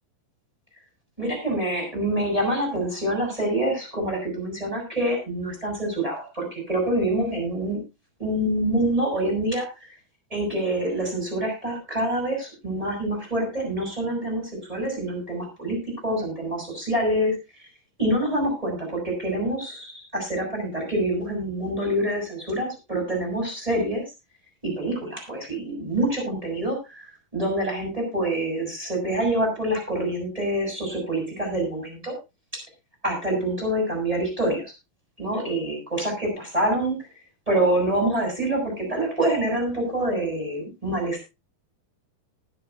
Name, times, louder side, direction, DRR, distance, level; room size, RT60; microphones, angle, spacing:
voice 1, 1.2-7.8 8.2-9.7 10.3-14.4 14.7-15.8 16.0-17.3 18.0-24.0 24.6-27.1 27.3-32.1 33.0-34.6 35.2-37.0 37.5-41.3, right 1 dB, 10° right, 0 dB, 6.9 m, -26 dB
19.0 x 10.0 x 2.7 m, 0.26 s
omnidirectional pair, 4.4 m